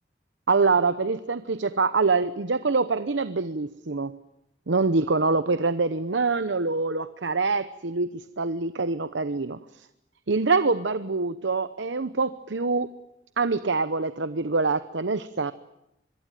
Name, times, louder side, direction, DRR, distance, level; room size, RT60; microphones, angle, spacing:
voice 1, 0.5-4.2 4.7-9.9 10.3-12.9 13.4-15.5, right 4 dB, 80° right, 13 dB, 0.9 m, -25 dB
26.0 x 22.5 x 9.2 m, 0.84 s
head